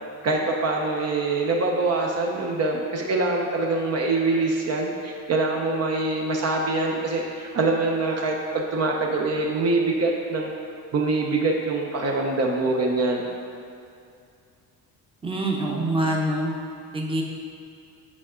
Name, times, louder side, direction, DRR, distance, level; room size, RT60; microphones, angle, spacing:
voice 1, 0.2-10.5 10.9-13.3, right 3 dB, 45° right, 0 dB, 0.7 m, -24 dB
voice 2, 15.2-16.5 16.9-17.2, right 1 dB, 15° right, -1 dB, 0.8 m, -25 dB
8.4 x 5.4 x 3.7 m, 2.4 s
cardioid pair, 130°, 36 cm